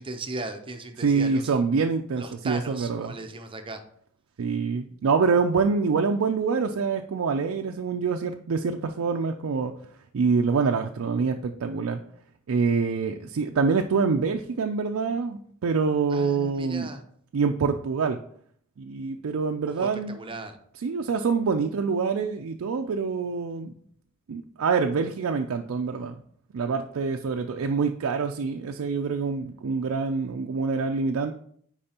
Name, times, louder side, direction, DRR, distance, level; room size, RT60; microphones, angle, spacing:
voice 1, 0.0-1.5 2.2-3.8 16.1-17.0 19.7-20.6, right 2 dB, 25° right, 7 dB, 0.6 m, -37 dB
voice 2, 1.0-3.2 4.4-9.7 10.1-12.0 12.5-16.9 17.3-18.2 18.8-20.2 20.8-23.7 24.3-26.2 26.5-31.3, right 5 dB, 70° right, 4 dB, 0.4 m, -26 dB
8.6 x 4.7 x 2.9 m, 0.63 s
head